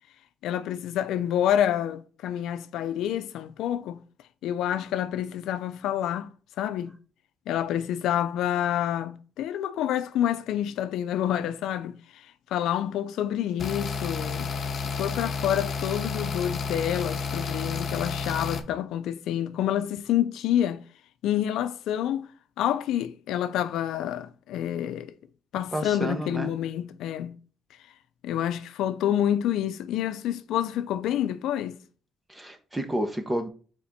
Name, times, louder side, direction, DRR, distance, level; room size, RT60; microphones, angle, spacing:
voice 1, 0.4-4.0 4.4-6.3 6.6-6.9 7.5-20.8 21.2-22.3 22.6-25.1 25.5-27.4 28.2-31.8, left 11 dB, 85° left, 0.6 m, -28 dB
sound 1, 13.6-18.6, left 5 dB, 50° left, 1.0 m, -31 dB
voice 2, 25.7-26.5 32.3-33.5, right 1 dB, 15° right, 1.3 m, -30 dB
5.8 x 4.4 x 4.2 m
cardioid pair, 90°, 0 cm